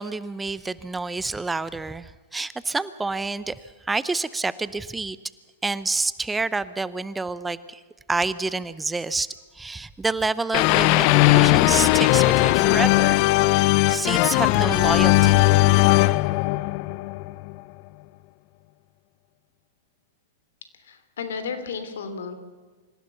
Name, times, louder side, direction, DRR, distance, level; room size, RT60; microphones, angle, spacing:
voice 1, 0.0-5.2 5.6-7.8 8.1-9.3 9.5-13.2 13.9-15.5, right 3 dB, 10° right, 16 dB, 0.7 m, -28 dB
sound 1, 10.5-17.5, left 19 dB, 50° left, 0.5 m, -18 dB
voice 2, 20.8-22.3, left 5 dB, 75° left, 10 dB, 3.0 m, -33 dB
25.5 x 16.0 x 7.0 m, 1.4 s
hypercardioid pair, 110°, 0 cm